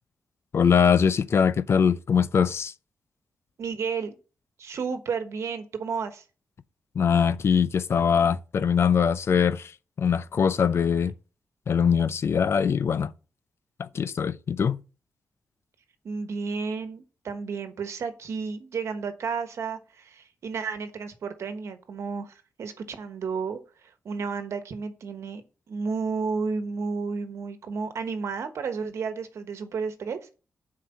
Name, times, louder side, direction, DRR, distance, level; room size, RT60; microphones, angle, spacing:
voice 1, 0.5-2.7 7.0-9.7 10.0-11.1 11.7-13.1 13.8-14.8, left 7 dB, 60° left, 0.5 m, -22 dB
voice 2, 3.6-4.1 4.6-6.2 16.0-25.4 25.7-30.3, right 5 dB, 75° right, 1.2 m, -32 dB
7.6 x 4.8 x 7.2 m
cardioid pair, 65°, 5 cm